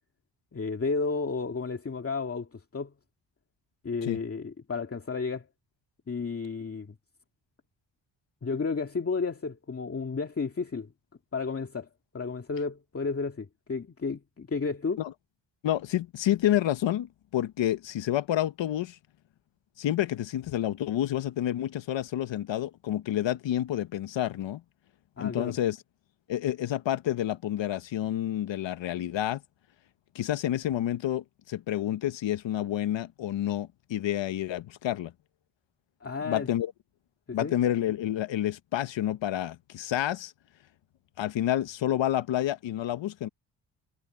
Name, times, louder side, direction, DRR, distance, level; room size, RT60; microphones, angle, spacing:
voice 1, 0.5-2.9 3.8-5.5 6.1-6.9 8.4-10.9 11.3-11.9 12.1-15.0 25.2-25.5 36.0-36.5 37.3-37.5, left 4 dB, 30° left, 2.2 m, -32 dB
voice 2, 15.6-19.0 19.8-24.6 25.2-25.8 26.3-29.4 30.1-35.1 36.2-36.7 37.3-40.3 41.2-43.3, left 12 dB, 75° left, 1.2 m, -29 dB
cardioid pair, 95°, 45 cm